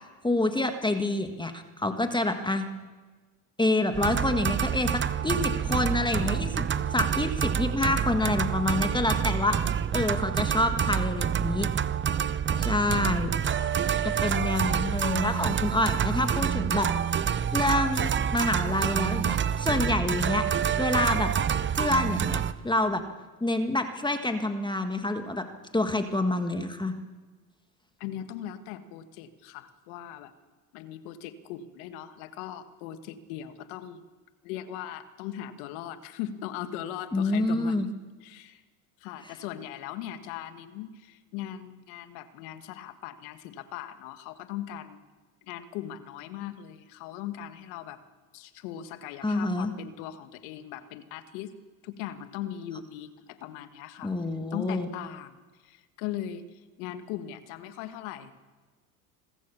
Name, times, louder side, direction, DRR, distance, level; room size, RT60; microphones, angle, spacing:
voice 1, 0.2-2.7 3.6-4.9 5.2-6.7 6.9-9.6 9.9-11.7 12.6-13.3 14.2-16.9 17.5-20.5 20.8-21.3 21.7-23.0 23.4-25.4 25.7-26.9 37.1-37.9 49.2-49.7 54.0-54.9, left 2 dB, 10° left, 7 dB, 1.6 m, -27 dB
sound 1, 3.9-22.5, right 8 dB, 25° right, 0.8 m, -27 dB
voice 2, 6.2-7.2 13.5-13.9 28.0-30.3 30.7-34.0 34.4-37.9 38.2-38.6 39.0-45.0 45.4-48.0 48.3-51.5 51.8-54.1 54.5-58.4, left 11 dB, 75° left, 10 dB, 1.7 m, -39 dB
26.0 x 14.5 x 7.0 m, 1.3 s
supercardioid pair, 85°, 43 cm